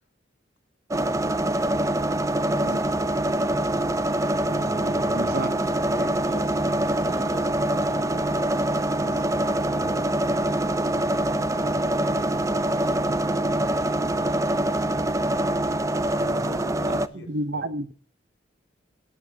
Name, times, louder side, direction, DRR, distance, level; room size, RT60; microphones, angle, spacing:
sound 1, 0.9-17.1, right 1 dB, 15° right, 0.4 m, -24 dB
voice 1, 2.5-2.8 4.4-5.5 5.9-13.7 16.0-17.7, left 1 dB, 75° left, 4 dB, 5.3 m, -42 dB
voice 2, 5.1-5.5 16.9-17.9, right 2 dB, 55° right, 13 dB, 0.8 m, -30 dB
19.0 x 9.2 x 2.8 m, 0.40 s
head